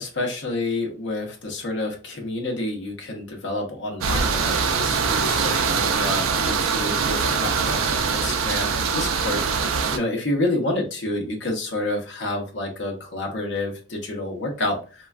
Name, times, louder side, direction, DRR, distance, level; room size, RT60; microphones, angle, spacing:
voice 1, 0.0-15.1, left 2 dB, 60° left, 2 dB, 0.7 m, -29 dB
sound 1, 4.0-10.0, right 5 dB, 90° right, 0.4 m, -23 dB
3.2 x 2.2 x 2.3 m, 0.36 s
head